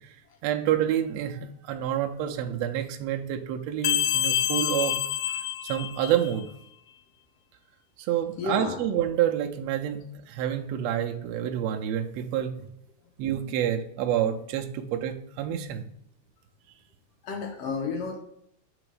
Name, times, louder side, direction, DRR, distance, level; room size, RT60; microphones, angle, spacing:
voice 1, 0.4-4.9 5.6-6.5 8.1-10.0 10.3-12.7 13.2-15.8, right 10 dB, 75° right, 3 dB, 1.6 m, -28 dB
sound 1, 3.8-6.4, left 12 dB, 90° left, 1.4 m, -27 dB
voice 2, 8.4-8.8 17.2-18.2, left 4 dB, 65° left, 3 dB, 1.7 m, -31 dB
7.0 x 3.7 x 4.9 m, 0.74 s
omnidirectional pair, 3.5 m